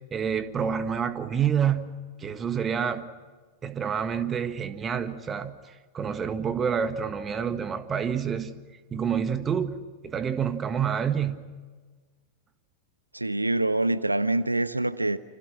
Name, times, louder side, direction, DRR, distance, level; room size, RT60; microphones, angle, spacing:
voice 1, 0.1-1.9 2.2-3.1 3.6-5.6 5.9-8.5 8.9-9.8 10.0-11.4, right 7 dB, 20° right, 1.6 m, -28 dB
voice 2, 13.1-15.2, right 2 dB, 85° right, 0.7 m, -25 dB
29.0 x 26.0 x 6.1 m
figure-of-eight pair, 90°, 0 cm